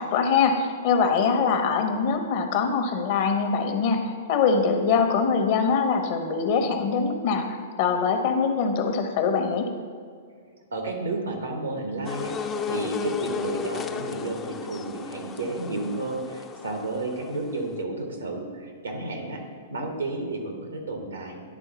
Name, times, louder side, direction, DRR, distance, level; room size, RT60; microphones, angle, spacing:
voice 1, 0.0-9.7, left 5 dB, 50° left, 6 dB, 0.8 m, -23 dB
voice 2, 10.7-19.4 19.7-21.4, right 2 dB, 85° right, 2 dB, 1.3 m, -32 dB
sound 1, 12.0-17.8, left 6 dB, 20° left, 0.4 m, -34 dB
10.0 x 3.7 x 4.1 m, 2.1 s
hypercardioid pair, 115°, 0 cm